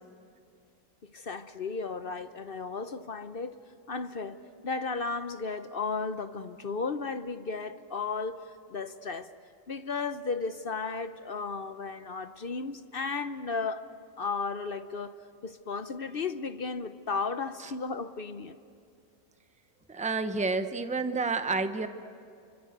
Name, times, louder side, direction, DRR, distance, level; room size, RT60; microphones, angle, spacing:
voice 1, 1.1-3.6 3.9-4.4 4.6-8.4 8.7-9.3 9.7-13.8 14.2-15.1 15.4-18.6, left 4 dB, 50° left, 11 dB, 0.8 m, -34 dB
voice 2, 19.9-21.9, right 4 dB, 5° right, 9 dB, 0.7 m, -29 dB
29.0 x 24.5 x 8.0 m, 2.5 s
omnidirectional pair, 1.6 m